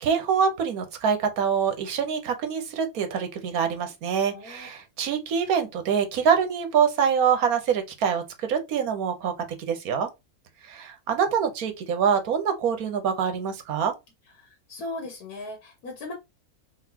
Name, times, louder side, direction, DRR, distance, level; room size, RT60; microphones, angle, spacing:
voice 1, 0.0-9.3 9.6-10.1 10.6-13.9, right 7 dB, 75° right, 1.3 m, -25 dB
voice 2, 4.3-4.7 14.4-16.1, left 2 dB, 85° left, 1.6 m, -38 dB
4.0 x 3.4 x 2.9 m
omnidirectional pair, 1.6 m